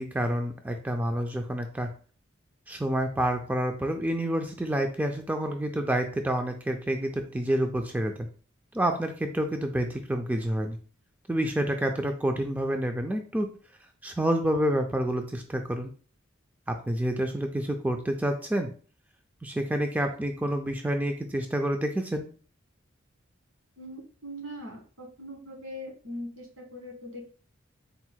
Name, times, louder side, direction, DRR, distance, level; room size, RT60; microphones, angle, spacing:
voice 1, 0.0-1.9 2.7-8.3 8.7-10.8 11.3-13.5 14.0-15.9 16.7-18.7 19.4-22.2, right 1 dB, 10° right, 4 dB, 0.3 m, -28 dB
voice 2, 23.8-27.3, equal, 75° right, 2 dB, 1.4 m, -41 dB
4.0 x 2.1 x 4.4 m, 0.40 s
head